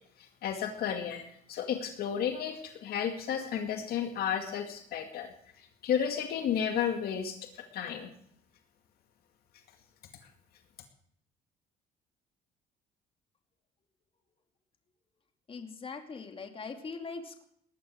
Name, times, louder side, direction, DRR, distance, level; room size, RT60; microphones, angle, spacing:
voice 1, 0.4-5.3 5.8-7.4 7.7-8.1, left 8 dB, 65° left, 5 dB, 2.1 m, -32 dB
voice 2, 15.5-17.4, left 4 dB, 35° left, 5 dB, 2.6 m, -41 dB
19.5 x 11.5 x 6.4 m, 0.69 s
cardioid pair, 110°, 17 cm